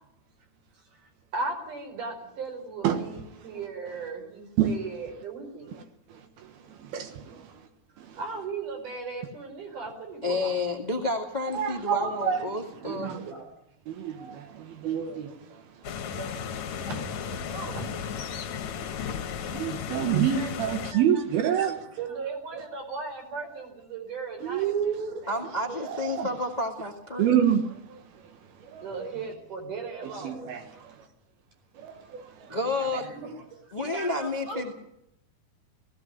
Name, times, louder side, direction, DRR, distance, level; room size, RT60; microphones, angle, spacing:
voice 1, 1.0-5.8 8.2-10.5 12.0-12.1 12.4-12.5 12.9-13.5 14.9-15.3 16.2-16.3 16.8-18.0 19.0-19.2 20.1-21.2 21.6-21.7 22.0-24.7 25.2-25.3 28.8-30.5 32.4-33.4 33.8-34.7, right 4 dB, 55° right, 6.1 m, -38 dB
voice 2, 2.8-3.6 4.6-4.7 5.7-5.8 6.1-7.7 8.0-8.2 11.5-12.5 12.8-13.3 13.9-16.1 19.1-21.7 24.4-26.3 27.2-29.1 30.0-31.1 31.7-32.6 32.9-33.3, right 9 dB, 80° right, 3.3 m, -29 dB
voice 3, 10.2-13.2 25.3-27.3 32.5-33.1 33.7-34.7, left 2 dB, 20° left, 1.2 m, -30 dB
sound 1, 15.8-20.9, left 7 dB, 60° left, 2.2 m, -34 dB
17.5 x 16.5 x 9.4 m
omnidirectional pair, 4.3 m